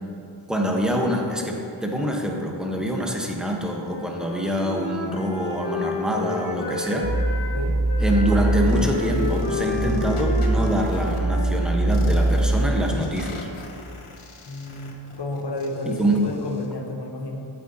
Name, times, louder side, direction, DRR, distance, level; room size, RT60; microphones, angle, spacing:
voice 1, 0.5-7.1 8.0-13.5 15.9-16.2, equal, ahead, 0 dB, 0.9 m, -25 dB
Wind instrument woodwind instrument, 3.7-7.5 7.9-12.4, left 2 dB, 30° left, 1.7 m, -32 dB
sound 1, 7.0-13.0, right 1 dB, 35° right, 0.8 m, -23 dB
voice 2, 7.4-7.8 14.4-17.5, left 1 dB, 55° left, 2 dB, 1.0 m, -32 dB
sound 2, 8.7-11.2 11.9-16.7, left 3 dB, 85° left, 0.9 m, -36 dB
8.9 x 8.3 x 2.7 m, 2.6 s
wide cardioid pair, 50°, 50 cm